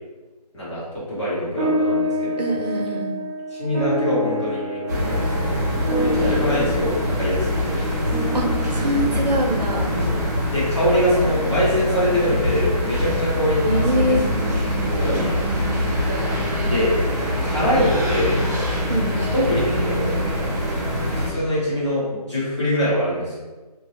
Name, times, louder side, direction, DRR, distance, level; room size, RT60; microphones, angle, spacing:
voice 1, 0.5-2.4 3.5-4.8 5.1-5.6 5.9-7.7 10.5-14.2 14.8-15.4 16.6-17.0 17.4-18.4 19.3-20.1 21.1-23.4, equal, 45° left, -9 dB, 1.4 m, -23 dB
sound 1, 1.6-10.2, equal, ahead, 1.0 m, -28 dB
voice 2, 2.4-3.2 8.3-8.5 8.7-9.9 13.6-14.2 18.9-19.3, right 1 dB, 90° right, 0 dB, 0.6 m, -23 dB
sound 2, 4.9-21.3, left 1 dB, 25° right, 0.5 m, -23 dB
2.8 x 2.2 x 2.9 m, 1.3 s
figure-of-eight pair, 165°, 20 cm